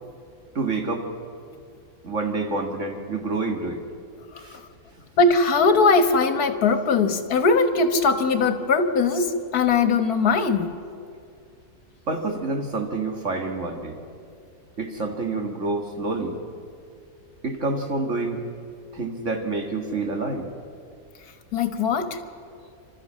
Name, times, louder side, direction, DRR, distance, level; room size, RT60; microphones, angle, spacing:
voice 1, 0.6-1.1 2.0-3.8 4.4-4.6 12.1-14.0 14.8-16.3 17.4-18.4 18.9-20.5, right 3 dB, 55° right, 3 dB, 2.1 m, -28 dB
voice 2, 5.2-10.7 21.5-22.2, left 4 dB, 85° left, 8 dB, 1.8 m, -20 dB
30.0 x 12.5 x 7.5 m, 2.4 s
omnidirectional pair, 1.6 m